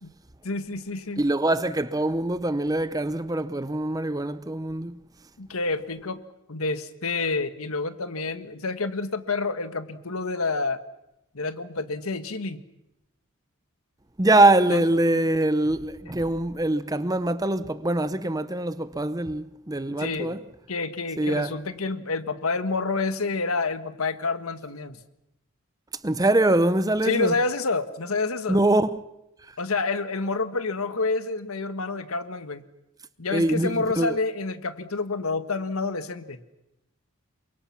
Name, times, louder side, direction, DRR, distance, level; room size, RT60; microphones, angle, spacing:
voice 1, 0.4-1.2 5.4-6.2 6.5-10.8 11.3-12.6 14.7-14.8 15.1-15.2 20.0-20.4 20.7-25.0 27.0-28.6 29.6-32.6 33.2-36.4, left 3 dB, 80° left, 1.5 m, -28 dB
voice 2, 1.2-5.0 14.2-20.4 21.2-21.6 26.0-27.3 28.5-28.9 33.3-34.2, right 2 dB, 15° right, 0.8 m, -23 dB
28.0 x 24.0 x 5.9 m
head